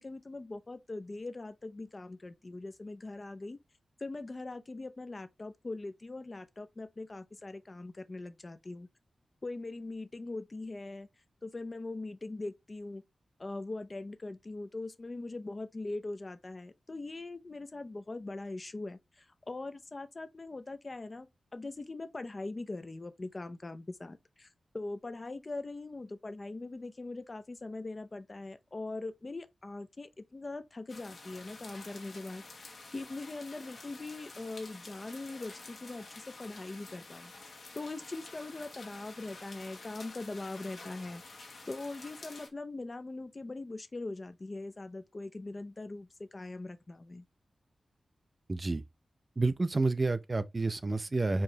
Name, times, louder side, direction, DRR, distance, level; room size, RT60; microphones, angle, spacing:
voice 1, 0.0-3.6 4.0-8.9 9.4-11.1 11.4-13.0 13.4-24.5 24.7-32.4 32.9-37.3 37.7-41.4 41.7-47.3, left 2 dB, 30° left, 0.5 m, -41 dB
sound 1, 30.9-42.5, left 3 dB, 55° left, 1.2 m, -50 dB
voice 2, 48.5-48.8 49.4-51.4, right 3 dB, 30° right, 0.3 m, -29 dB
4.6 x 3.0 x 2.7 m
wide cardioid pair, 120°, 0 cm